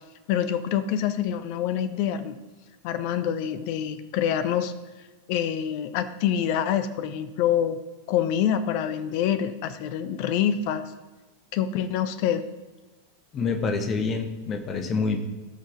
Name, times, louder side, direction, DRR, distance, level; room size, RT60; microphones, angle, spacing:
voice 1, 0.3-2.4 2.8-4.7 5.3-7.8 8.1-10.8 11.5-12.4, left 9 dB, 45° left, 12 dB, 0.8 m, -26 dB
voice 2, 13.3-15.2, left 4 dB, 25° left, 6 dB, 1.5 m, -27 dB
17.5 x 6.3 x 4.0 m, 1.2 s
figure-of-eight pair, 90°, 0 cm